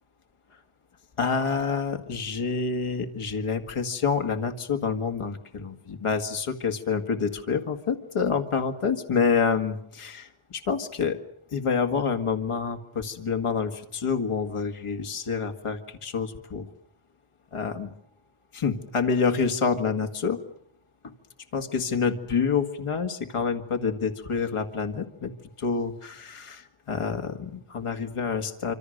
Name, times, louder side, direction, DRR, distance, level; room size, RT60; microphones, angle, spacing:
voice 1, 1.2-11.2 11.5-16.7 17.5-17.9 18.5-20.4 21.0-21.1 21.5-25.3 25.6-28.7, left 5 dB, 90° left, 4 dB, 2.1 m, -27 dB
26.5 x 26.0 x 6.6 m, 0.70 s
wide cardioid pair, 170°, 50 cm